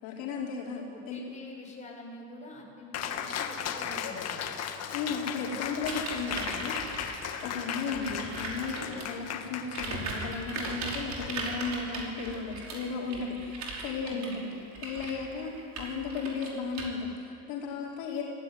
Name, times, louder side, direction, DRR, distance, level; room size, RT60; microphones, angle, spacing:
voice 1, 0.0-1.2 4.9-7.0 7.4-14.5 14.8-18.2, left 5 dB, 70° left, -3 dB, 4.4 m, -35 dB
voice 2, 0.6-4.4 14.1-14.4, left 1 dB, 20° left, -3 dB, 7.6 m, -46 dB
Cheering, 2.9-11.9, left 8 dB, 40° left, 1.9 m, -37 dB
sound 1, 5.8-9.2 9.6-16.8, right 3 dB, 45° right, 5.4 m, -39 dB
25.0 x 16.5 x 9.5 m, 2.6 s
cardioid pair, 130°, 38 cm